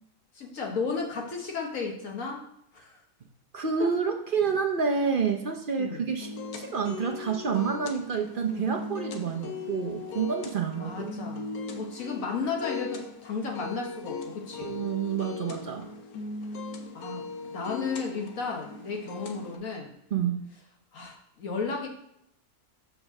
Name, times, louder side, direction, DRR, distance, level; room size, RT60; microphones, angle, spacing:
voice 1, 0.3-2.4 2.7-3.0 3.8-3.9 5.8-6.1 10.8-14.8 16.9-19.9 20.9-21.9, left 4 dB, 65° left, 0 dB, 1.5 m, -34 dB
voice 2, 3.5-6.3 6.6-11.1 14.6-15.9 20.1-20.4, right 6 dB, 50° right, 3 dB, 0.7 m, -28 dB
sound 1, 6.2-19.6, left 4 dB, 80° left, 1.3 m, -39 dB
5.3 x 4.9 x 6.4 m, 0.76 s
omnidirectional pair, 1.6 m